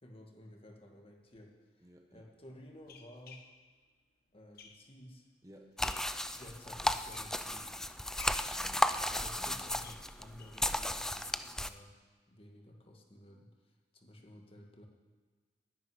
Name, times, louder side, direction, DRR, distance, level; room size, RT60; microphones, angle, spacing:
voice 1, 0.0-3.4 4.3-5.3 6.4-7.8 9.1-11.3 11.6-11.9 12.3-13.5 13.9-14.9, left 1 dB, 35° left, 1 dB, 1.8 m, -54 dB
sound 1, 1.3-1.4 2.2-5.1 5.5-6.2 6.7-7.7 8.1-10.7 11.0-11.1 11.4-11.5 11.9-12.0, left 6 dB, 55° left, 1.2 m, -54 dB
voice 2, 1.8-2.3 5.4-6.0 8.3-8.8 9.2-9.7, equal, 20° right, 2 dB, 1.2 m, -57 dB
sound 2, 5.8-11.7, left 1 dB, 5° left, 0.3 m, -34 dB
10.5 x 9.2 x 9.8 m, 1.5 s
head